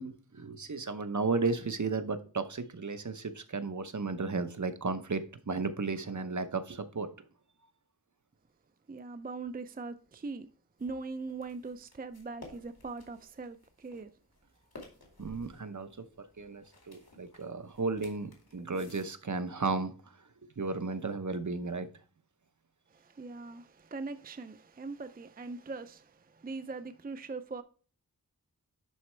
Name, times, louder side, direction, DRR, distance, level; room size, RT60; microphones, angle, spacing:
voice 1, 0.0-7.1 15.2-19.9 20.6-21.9, right 4 dB, 55° right, 0.8 m, -34 dB
voice 2, 8.9-10.5 10.8-14.1 22.9-27.6, right 3 dB, 25° right, 0.4 m, -41 dB
sound 1, 10.8-19.1, left 2 dB, 80° left, 2.3 m, -55 dB
11.0 x 4.1 x 3.3 m
wide cardioid pair, 55°, 36 cm